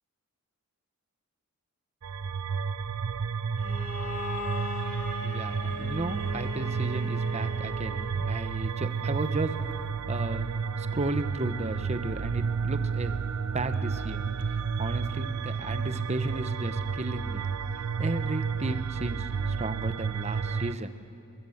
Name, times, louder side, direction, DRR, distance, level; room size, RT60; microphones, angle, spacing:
sound 1, 2.0-20.8, right 5 dB, 85° right, 0.6 m, -31 dB
Bowed string instrument, 3.6-8.3, left 2 dB, 70° left, 2.9 m, -38 dB
voice 1, 5.2-9.5 10.1-10.5 10.8-13.2 13.5-14.2 14.5-17.4 18.0-20.9, right 2 dB, 30° right, 10 dB, 1.0 m, -34 dB
22.5 x 21.5 x 7.2 m, 2.4 s
head